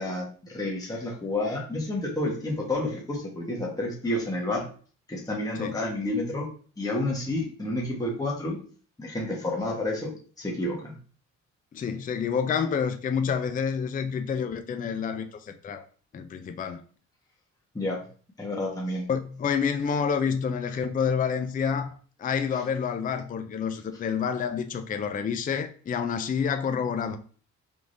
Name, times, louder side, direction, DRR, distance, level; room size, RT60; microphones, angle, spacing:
voice 1, 0.0-4.6 5.1-6.5 6.8-8.6 9.0-10.9 17.7-18.0 18.4-19.1, left 1 dB, 10° left, 1.2 m, -30 dB
voice 2, 11.7-15.9 16.1-16.8 19.1-27.2, left 6 dB, 30° left, 0.4 m, -28 dB
4.6 x 3.7 x 2.6 m
cardioid pair, 90°, 30 cm